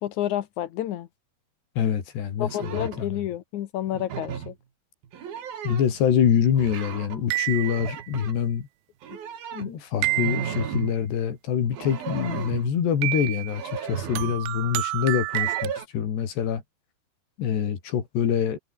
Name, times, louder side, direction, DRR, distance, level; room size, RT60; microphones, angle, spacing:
voice 1, 0.0-1.1 2.4-4.6 17.4-17.5, left 12 dB, 70° left, 1.9 m, -30 dB
voice 2, 1.8-3.1 5.6-8.7 9.5-16.6 17.4-18.6, left 8 dB, 90° left, 5.4 m, -25 dB
sound 1, 2.4-3.1 3.9-4.6 5.0-6.0 6.6-7.2 7.6-8.4 9.0-11.0 11.6-12.8 13.5-14.4 15.3-15.9, right 8 dB, 65° right, 4.6 m, -35 dB
sound 2, 7.3-8.1 10.0-10.7 13.0-13.6 14.2-15.7, right 21 dB, 85° right, 2.0 m, -29 dB
omnidirectional pair, 4.7 m